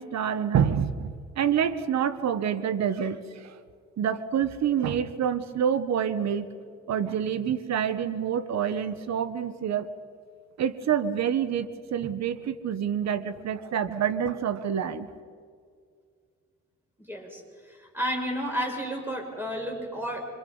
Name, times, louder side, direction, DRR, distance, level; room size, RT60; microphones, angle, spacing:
voice 1, 0.0-3.6 4.0-6.5 6.9-9.9 10.6-15.1, right 8 dB, 60° right, 12 dB, 1.3 m, -27 dB
voice 2, 17.0-17.4 17.9-20.2, equal, 5° right, 0 dB, 6.6 m, -31 dB
26.5 x 26.0 x 5.6 m, 2.1 s
cardioid pair, 90°, 30 cm